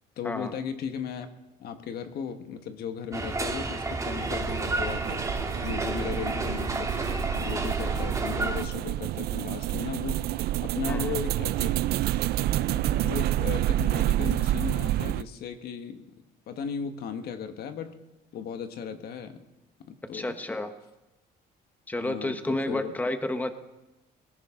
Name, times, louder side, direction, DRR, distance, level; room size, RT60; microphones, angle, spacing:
voice 1, 0.2-1.3 1.6-10.2 10.6-11.8 12.7-16.1 16.5-17.9 18.3-19.4 19.9-20.4 22.0-22.9, left 7 dB, 70° left, 7 dB, 1.5 m, -36 dB
sound 1, 3.1-8.7, right 3 dB, 20° right, 1.8 m, -31 dB
sound 2, 4.2-15.2, right 14 dB, 65° right, 0.4 m, -29 dB
voice 2, 20.1-20.7 21.9-23.5, left 1 dB, 10° left, 8 dB, 1.1 m, -30 dB
18.5 x 16.5 x 3.8 m, 1.0 s
cardioid pair, 110°, 17 cm